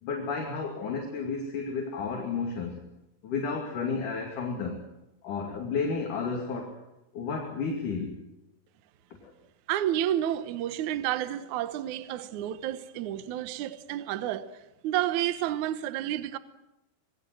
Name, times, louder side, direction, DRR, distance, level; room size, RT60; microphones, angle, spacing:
voice 1, 0.0-2.8 3.2-4.8 5.2-6.8 7.1-8.2 9.2-9.3, left 4 dB, 55° left, 3.7 m, -32 dB
voice 2, 9.7-14.5 14.8-16.4, right 12 dB, 70° right, 1.9 m, -30 dB
26.0 x 20.0 x 7.8 m
omnidirectional pair, 4.8 m